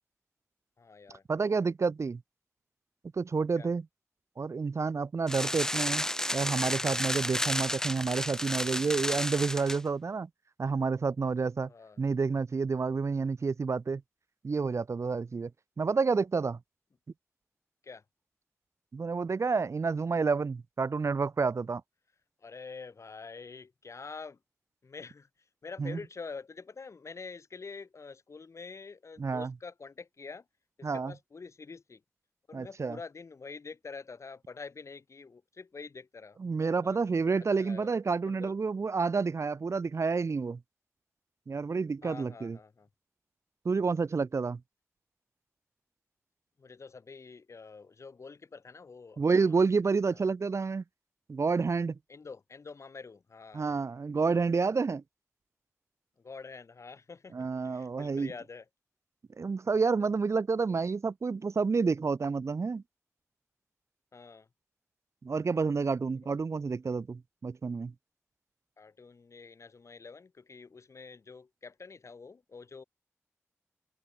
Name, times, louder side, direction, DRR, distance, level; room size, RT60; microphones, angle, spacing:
voice 1, 0.8-1.2 3.6-3.7 5.4-5.7 11.7-12.0 17.8-18.0 22.4-24.4 24.8-25.3 25.6-30.4 30.8-32.0 32.5-37.0 37.6-37.9 38.3-38.5 42.0-42.9 46.6-49.5 50.2-50.3 52.1-53.6 56.2-58.6 64.1-64.5 68.8-72.8, left 4 dB, 90° left, 4.3 m, -46 dB
voice 2, 1.3-2.2 3.1-3.9 4.4-10.3 10.6-11.7 12.0-14.0 14.4-15.5 15.8-16.6 18.9-21.8 25.8-26.0 29.2-29.5 30.8-31.1 32.5-33.0 36.4-40.6 41.5-42.6 43.6-44.6 49.2-50.8 51.3-52.0 53.5-55.0 57.3-58.3 59.4-62.8 65.2-67.9, right 4 dB, 80° right, 0.9 m, -29 dB
sound 1, 5.3-9.8, left 1 dB, 10° left, 0.8 m, -32 dB
open air
wide cardioid pair, 70°, 5 cm